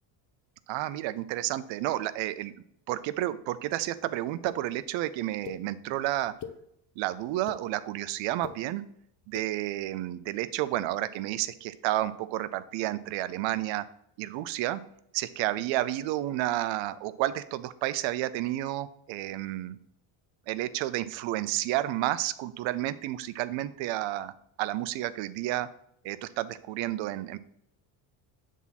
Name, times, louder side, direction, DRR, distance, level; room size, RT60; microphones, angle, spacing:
voice 1, 0.7-2.5 2.9-6.3 7.0-8.8 9.3-13.9 14.2-14.8 15.1-19.8 20.5-24.3 24.6-25.7 26.0-27.4, right 15 dB, 65° right, 14 dB, 0.6 m, -31 dB
sound 1, 4.5-4.6 5.4-5.6 6.2-6.6 7.2-7.6 8.3-8.6 9.2-9.5, left 8 dB, 40° left, 0.6 m, -41 dB
7.2 x 3.6 x 4.1 m, 0.72 s
cardioid pair, 120°, 49 cm